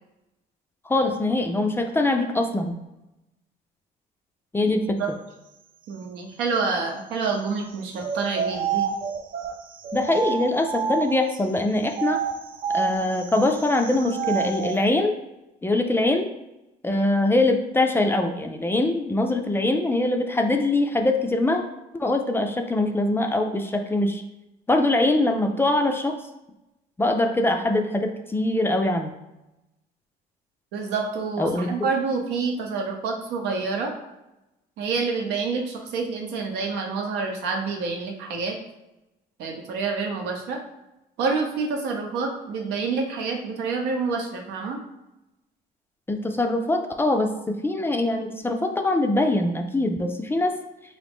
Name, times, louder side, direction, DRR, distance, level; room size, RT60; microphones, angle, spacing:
voice 1, 0.9-2.8 4.5-4.8 9.9-12.2 12.7-15.2 15.6-16.3 16.8-21.6 22.0-24.2 24.7-26.2 27.0-29.1 31.4-31.7 46.1-50.6, left 2 dB, 15° left, 5 dB, 0.3 m, -23 dB
voice 2, 4.7-5.1 5.9-8.9 30.7-33.9 34.8-38.6 39.4-40.6 41.2-44.8, right 4 dB, 90° right, 2 dB, 0.7 m, -28 dB
sound 1, 8.0-11.4 11.9-14.8, right 6 dB, 55° right, 0.5 m, -29 dB
3.9 x 2.6 x 3.5 m, 0.95 s
cardioid pair, 110°, 17 cm